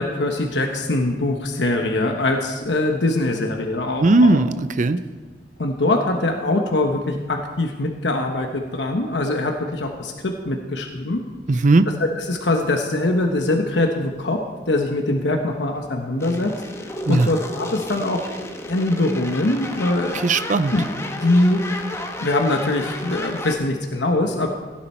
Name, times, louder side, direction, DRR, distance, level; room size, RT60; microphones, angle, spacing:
voice 1, 0.0-4.4 5.6-11.2 11.5-11.6 12.0-14.4 14.7-16.5 16.8-18.2 18.7-20.2 20.7-20.8 21.2-21.9 22.2-24.5, left 2 dB, 80° left, 3 dB, 1.1 m, -22 dB
voice 2, 4.0-5.0 11.5-11.9 17.1-17.3 20.2-20.7, right 2 dB, 45° right, 12 dB, 0.6 m, -17 dB
sound 1, 16.2-23.5, left 1 dB, 15° left, 1.2 m, -33 dB
16.0 x 10.5 x 4.4 m, 1.4 s
head